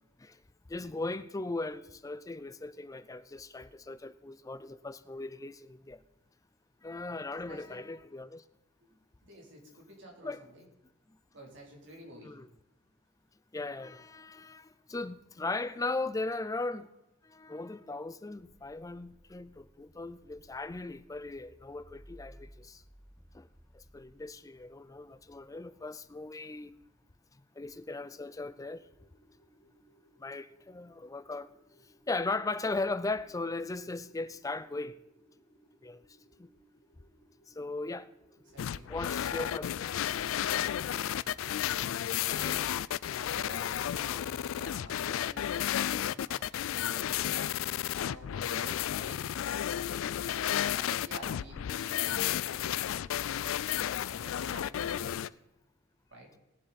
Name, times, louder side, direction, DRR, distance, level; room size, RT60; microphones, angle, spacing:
voice 1, 0.7-6.0 6.8-8.4 10.2-10.4 12.2-12.5 13.5-16.9 17.2-22.8 23.3-23.5 23.7-26.7 27.3-28.8 30.2-31.5 32.1-35.0 35.8-36.0 36.4-36.5 37.5-38.1 38.9-41.1 42.3-42.7 45.1-45.2 45.6-45.7 46.0-46.1 46.9-47.1, left 3 dB, 15° left, 0.4 m, -38 dB
voice 2, 7.5-7.8 8.8-8.9 9.2-10.7 11.3-12.3 38.5-38.8 43.3-47.4 47.9-49.3 50.5-53.6 54.1-55.2 56.1-56.3, right 1 dB, 65° right, 3.2 m, -51 dB
sound 1, 18.4-26.2, equal, 5° right, 0.8 m, -59 dB
sound 2, 27.6-42.2, right 1 dB, 60° left, 2.3 m, -65 dB
sound 3, 38.6-55.3, left 11 dB, 80° left, 0.3 m, -32 dB
19.5 x 7.5 x 4.1 m
head